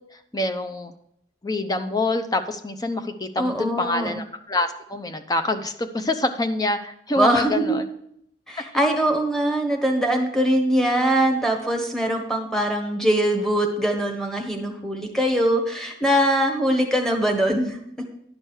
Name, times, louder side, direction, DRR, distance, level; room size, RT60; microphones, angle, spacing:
voice 1, 0.3-0.9 1.4-7.8, left 2 dB, 20° left, 8 dB, 0.7 m, -26 dB
voice 2, 3.4-4.2 7.1-7.8 8.5-17.8, right 1 dB, 5° left, 2 dB, 1.3 m, -22 dB
11.0 x 5.2 x 6.4 m, 0.74 s
head